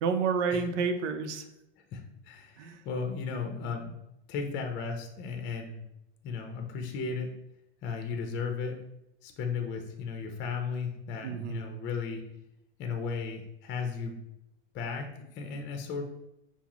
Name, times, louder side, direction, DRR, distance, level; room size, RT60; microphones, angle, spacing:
voice 1, 0.0-1.4 2.6-2.8 11.2-11.6, right 5 dB, 80° right, 8 dB, 0.6 m, -29 dB
voice 2, 1.9-4.0 4.3-5.8 6.2-7.3 7.8-8.8 9.2-12.2 12.8-14.2 14.7-16.0, left 5 dB, 35° left, 3 dB, 0.6 m, -35 dB
5.6 x 2.0 x 3.0 m, 0.84 s
hypercardioid pair, 115°, 35 cm